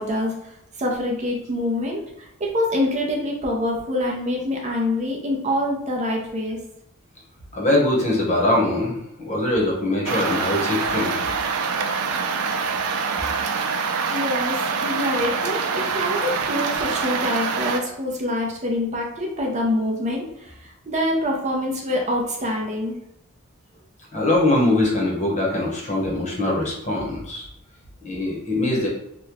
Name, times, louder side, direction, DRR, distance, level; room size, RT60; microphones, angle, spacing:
voice 1, 0.0-6.6 14.1-23.0, left 1 dB, 35° right, -1 dB, 0.6 m, -25 dB
voice 2, 7.5-11.3 24.1-27.5 28.0-28.9, left 1 dB, 35° left, -2 dB, 0.9 m, -22 dB
sound 1, 10.1-17.8, right 5 dB, 85° right, 0.4 m, -25 dB
3.0 x 2.2 x 3.4 m, 0.79 s
head